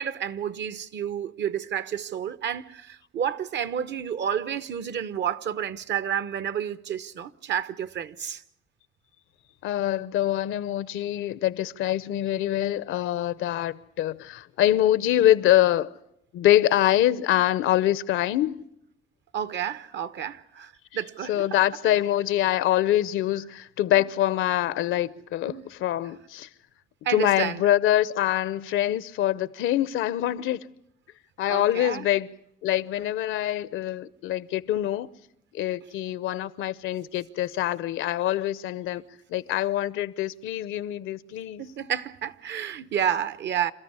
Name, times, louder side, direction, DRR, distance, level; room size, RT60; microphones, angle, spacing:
voice 1, 0.0-8.4 19.3-21.4 25.4-25.6 27.0-27.6 31.5-32.1 41.6-43.7, right 9 dB, 65° right, 1.0 m, -30 dB
voice 2, 9.6-15.9 16.3-18.6 20.9-21.0 21.3-26.5 27.1-30.7 31.4-32.3 32.6-35.1 35.5-39.0 39.3-41.7, left 13 dB, 85° left, 0.8 m, -25 dB
27.5 x 13.5 x 9.6 m
cardioid pair, 90°, 20 cm